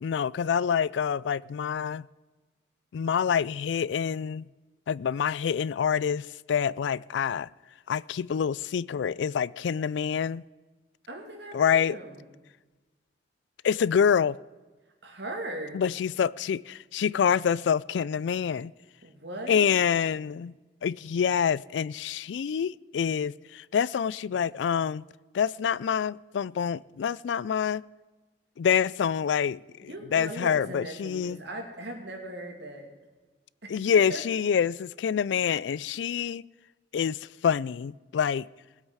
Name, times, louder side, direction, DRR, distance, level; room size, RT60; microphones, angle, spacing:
voice 1, 0.0-2.1 2.9-4.4 4.9-7.5 7.9-10.4 11.5-12.0 13.6-14.4 15.7-18.7 19.5-20.5 20.8-25.0 25.3-27.8 28.6-31.4 33.7-36.4 36.9-38.5, left 7 dB, 80° left, 0.3 m, -26 dB
voice 2, 11.1-12.2 15.0-15.8 19.0-19.7 29.8-32.9 33.6-33.7 34.1-34.2, right 1 dB, 75° right, 2.6 m, -38 dB
19.0 x 8.1 x 5.6 m
head